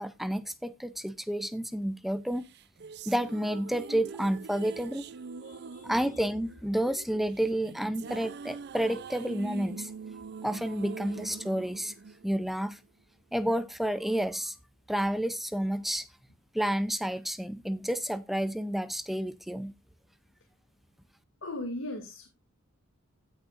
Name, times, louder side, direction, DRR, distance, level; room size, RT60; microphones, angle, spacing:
voice 1, 0.0-2.4 3.1-5.0 5.8-9.9 10.4-11.9 12.2-12.8 13.3-14.6 14.9-16.1 16.5-19.7, right 1 dB, ahead, 0.5 m, -30 dB
sound 1, 2.4-12.8, right 4 dB, 50° right, 0.5 m, -43 dB
voice 2, 5.2-6.2 6.7-7.0 8.1-8.2 21.4-22.3, left 2 dB, 70° left, 2.4 m, -40 dB
17.0 x 6.4 x 2.5 m
head